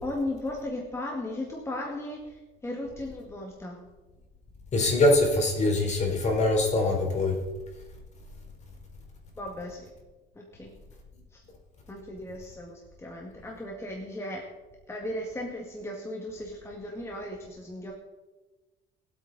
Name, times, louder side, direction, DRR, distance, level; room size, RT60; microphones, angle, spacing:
voice 1, 0.0-3.8 9.4-9.9 10.4-10.7 11.3-11.4 11.9-14.4 14.9-17.9, left 1 dB, 15° left, -1 dB, 2.0 m, -36 dB
voice 2, 4.7-7.4, left 2 dB, 45° left, 0 dB, 4.0 m, -23 dB
22.5 x 8.4 x 4.1 m, 1.2 s
cardioid pair, 110°, 17 cm